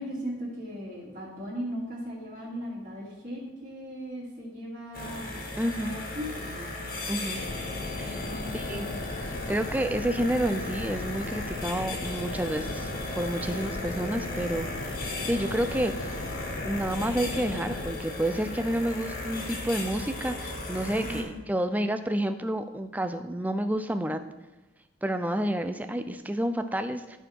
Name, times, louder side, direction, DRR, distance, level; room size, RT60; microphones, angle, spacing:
voice 1, 0.0-5.2 5.8-6.9 8.0-9.1 13.5-13.7 21.0-21.4, equal, 40° right, -11 dB, 2.6 m, -38 dB
sound 1, 4.9-21.2, left 2 dB, 50° left, 1.7 m, -36 dB
voice 2, 5.6-5.9 7.1-7.4 8.0-8.2 8.5-8.9 9.5-12.9 13.2-14.7 15.0-16.1 16.6-24.2 25.0-27.2, right 1 dB, 10° right, 9 dB, 0.4 m, -29 dB
sound 2, 7.3-17.9, left 2 dB, 75° left, 0.8 m, -38 dB
13.0 x 4.3 x 4.6 m, 1.1 s
head